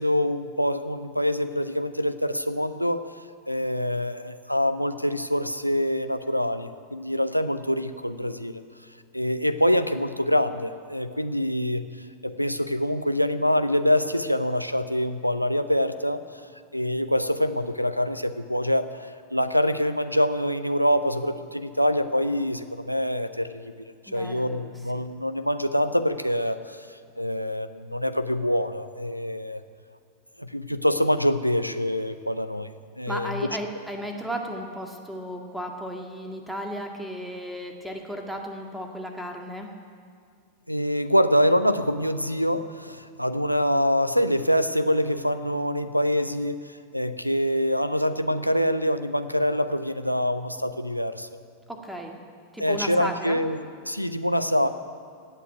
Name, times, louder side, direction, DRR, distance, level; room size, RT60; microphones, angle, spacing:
voice 1, 0.0-3.0 3.5-8.6 9.1-11.8 12.2-16.2 16.7-23.7 24.1-26.9 27.2-29.6 30.4-32.7 33.0-33.4 40.7-46.6 46.9-51.3 52.6-54.7, equal, 90° left, 9 dB, 0.6 m, -25 dB
voice 2, 24.1-25.0 33.1-39.7 51.7-52.2 52.5-53.4, equal, 5° right, 2 dB, 1.9 m, -35 dB
17.0 x 8.5 x 9.3 m, 2.2 s
figure-of-eight pair, 90°, 0 cm